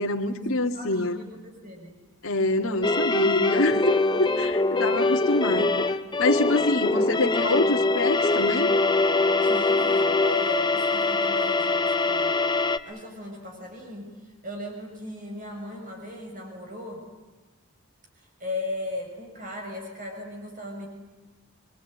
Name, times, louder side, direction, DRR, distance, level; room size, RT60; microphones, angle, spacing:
voice 1, 0.0-1.2 2.2-5.9 6.2-8.7, left 2 dB, 70° left, 3 dB, 2.2 m, -26 dB
voice 2, 0.6-2.0 4.7-5.3 6.7-7.0 9.4-12.4 12.8-14.2 14.4-17.0 18.2-20.9, left 1 dB, 40° right, 2 dB, 6.7 m, -37 dB
sound 1, 2.8-12.8, left 3 dB, 20° left, 0.8 m, -23 dB
25.0 x 24.0 x 9.2 m, 1.2 s
head